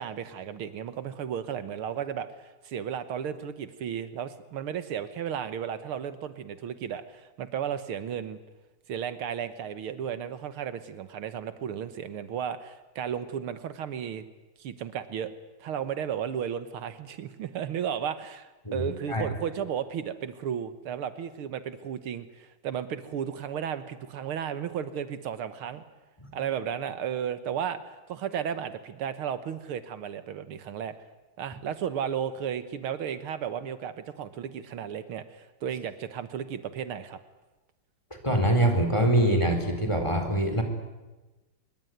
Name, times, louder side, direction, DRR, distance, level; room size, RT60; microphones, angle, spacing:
voice 1, 0.0-8.4 8.9-14.3 14.6-15.3 15.6-25.8 26.3-30.9 31.4-37.2, right 8 dB, 80° right, 12 dB, 2.1 m, -34 dB
voice 2, 18.6-19.3 38.2-40.6, right 1 dB, 15° left, 5 dB, 4.0 m, -24 dB
24.5 x 23.0 x 9.4 m, 1.1 s
omnidirectional pair, 2.3 m